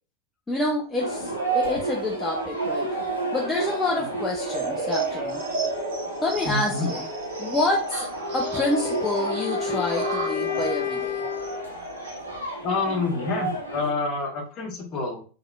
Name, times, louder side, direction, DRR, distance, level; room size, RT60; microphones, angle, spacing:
voice 1, 0.5-3.0 3.3-5.5 6.2-6.9 7.4-8.1 8.3-11.2, left 2 dB, 15° left, -2 dB, 0.6 m, -28 dB
sound 1, 1.0-13.9, right 2 dB, 85° right, 1.0 m, -32 dB
sound 2, 4.4-12.4, right 3 dB, 55° right, 1.1 m, -33 dB
voice 2, 6.4-6.9 12.6-15.3, left 3 dB, 35° left, 0 dB, 1.2 m, -28 dB
Wind instrument woodwind instrument, 8.2-11.7, left 11 dB, 65° left, 0.8 m, -31 dB
3.6 x 3.3 x 2.3 m, 0.39 s
figure-of-eight pair, 90°, 0 cm